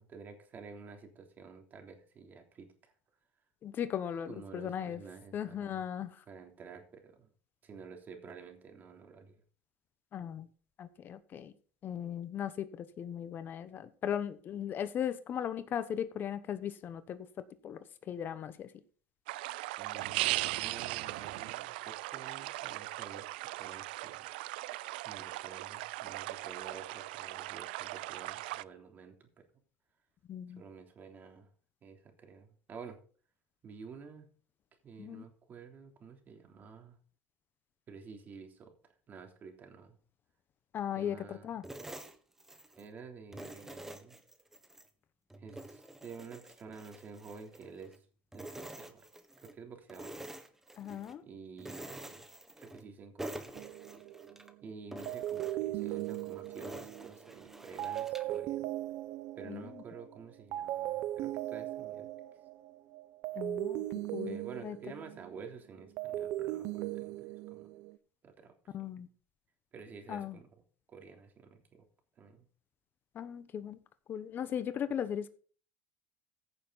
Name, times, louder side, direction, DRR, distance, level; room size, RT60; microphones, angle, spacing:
voice 1, 0.0-2.9 4.3-5.8 6.3-7.3 7.6-9.4 19.8-24.3 25.0-29.4 30.5-31.5 31.8-33.0 33.6-34.3 34.8-37.0 37.9-38.7 39.1-40.0 40.9-41.6 42.8-44.2 45.4-48.0 48.3-49.1 49.5-50.1 51.2-52.3 52.6-53.5 54.6-58.7 59.3-62.1 64.2-67.7 68.2-69.0 69.7-70.5 70.9-71.9 72.2-72.4, right 5 dB, 35° right, 3.3 m, -50 dB
voice 2, 3.6-5.0 5.3-6.2 10.1-10.5 10.8-11.5 11.8-17.3 17.6-18.7 30.3-30.6 35.0-35.2 40.7-41.6 50.8-51.2 59.5-59.6 63.3-63.8 64.1-64.8 68.7-69.1 70.1-70.4 73.1-73.8 74.1-75.3, left 9 dB, 40° left, 1.0 m, -37 dB
sound 1, 19.3-28.6, right 19 dB, 90° right, 0.4 m, -38 dB
sound 2, 41.6-42.9 43.3-44.9 45.3-48.0 48.3-49.6 49.9-51.2 51.6-52.9 53.2-54.5 54.9-58.4, right 1 dB, 5° right, 1.5 m, -47 dB
sound 3, 53.5-54.5 55.1-60.2 60.5-65.5 65.8-68.0, right 14 dB, 65° right, 0.8 m, -38 dB
15.0 x 6.8 x 4.1 m
supercardioid pair, 115°, 5 cm